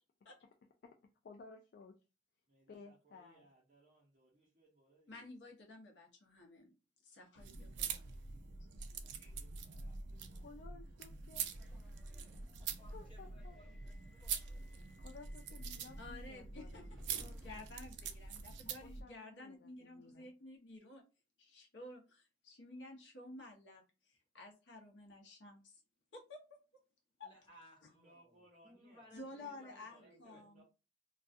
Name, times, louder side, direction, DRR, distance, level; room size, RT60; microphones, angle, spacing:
voice 1, 1.3-1.9 2.7-3.5 10.3-11.4 11.9-12.5 12.9-13.6 15.0-17.7 18.7-20.3, left 4 dB, 55° left, 3 dB, 0.3 m, -57 dB
voice 2, 2.5-5.2 9.0-10.5 27.9-30.6, right 2 dB, 40° right, -5 dB, 0.7 m, -67 dB
voice 3, 5.1-6.7 7.0-8.0 9.2-9.3 16.0-21.0 21.4-25.8 26.1-26.4 27.2-27.3 29.1-30.6, left 2 dB, 75° left, 0 dB, 0.7 m, -53 dB
sound 1, 7.4-19.0, right 6 dB, 70° right, 0.4 m, -45 dB
Subway metro underground, 11.0-18.6, equal, ahead, 0.7 m, -60 dB
voice 4, 12.6-14.9 15.5-15.9 27.2-30.6, left 1 dB, 30° left, -1 dB, 0.9 m, -64 dB
2.3 x 2.2 x 2.5 m, 0.31 s
head